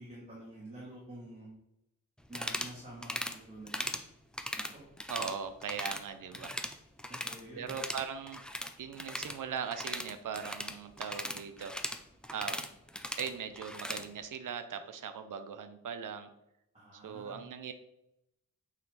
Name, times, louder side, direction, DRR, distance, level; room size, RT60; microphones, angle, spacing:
voice 1, 0.0-1.5 2.3-3.9 4.6-4.8 7.1-7.7 16.7-17.4, right 1 dB, 15° right, -7 dB, 2.2 m, -48 dB
sound 1, 2.3-2.7 3.0-3.4 3.7-4.0 4.3-5.4 5.6-6.0 6.3-7.4 7.7-14.1, left 1 dB, ahead, 0.5 m, -39 dB
voice 2, 5.1-6.5 7.6-8.4 8.8-11.7 12.3-12.7 13.2-16.3 16.9-17.7, right 7 dB, 60° right, 9 dB, 0.7 m, -40 dB
8.4 x 4.6 x 4.0 m, 0.85 s
wide cardioid pair, 150°, 36 cm